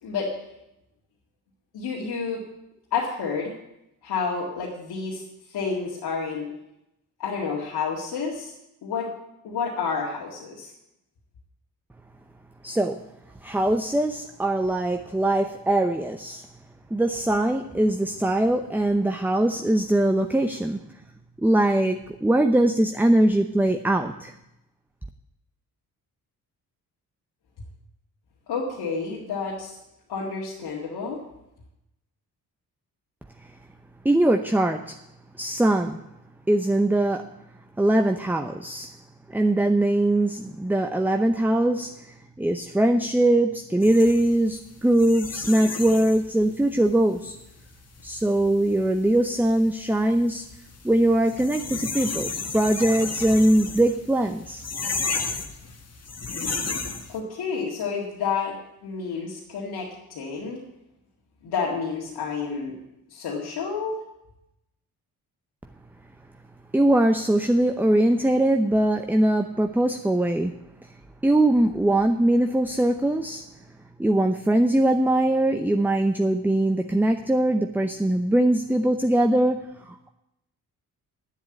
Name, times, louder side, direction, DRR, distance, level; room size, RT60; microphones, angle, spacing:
voice 1, 0.0-0.4 1.7-2.4 2.9-3.5 4.0-6.5 7.2-8.5 8.8-9.1 9.4-10.7 28.5-29.8 30.1-31.2 57.1-58.6 58.8-60.6 61.4-62.8 63.1-64.0, left 5 dB, 85° left, -3 dB, 2.0 m, -30 dB
voice 2, 12.6-13.0 13.4-16.5 16.9-20.8 21.4-24.3 34.0-35.0 35.4-36.0 36.5-37.3 37.8-38.9 39.3-47.4 48.0-50.5 50.8-54.7 66.7-70.5 71.2-73.4 74.0-80.1, right 1 dB, 5° right, 6 dB, 0.7 m, -22 dB
sound 1, 43.8-57.2, left 4 dB, 40° left, 1.6 m, -34 dB
9.7 x 7.4 x 8.8 m, 0.86 s
cardioid pair, 65°, 38 cm